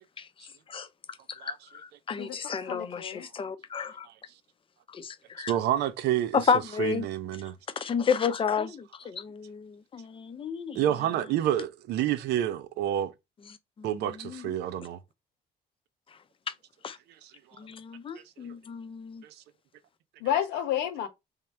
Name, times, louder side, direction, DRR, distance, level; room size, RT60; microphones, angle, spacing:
voice 1, 1.3-4.1 4.9-5.5 6.3-7.1 7.8-10.8 13.8-13.9 14.2-14.5 16.8-17.0 17.6-19.2, left 6 dB, 30° left, 0.6 m, -31 dB
voice 2, 2.2-3.3 20.2-21.1, left 10 dB, 85° left, 1.0 m, -31 dB
voice 3, 5.4-6.4 6.8-7.5 10.8-13.1 13.8-15.0 17.2-17.3 19.2-19.3, right 11 dB, 75° right, 0.6 m, -28 dB
3.6 x 3.2 x 4.2 m
cardioid pair, 110°, 17 cm